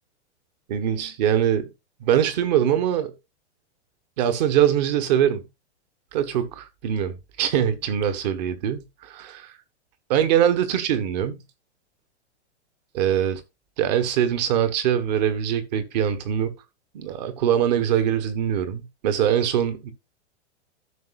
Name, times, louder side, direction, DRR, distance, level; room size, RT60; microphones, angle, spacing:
voice 1, 0.7-1.7 2.0-3.1 4.2-5.5 6.1-9.5 10.1-11.4 12.9-13.4 13.8-16.5 16.9-19.9, right 10 dB, 35° right, 1.4 m, -23 dB
14.5 x 6.1 x 2.5 m
hypercardioid pair, 165°, 36 cm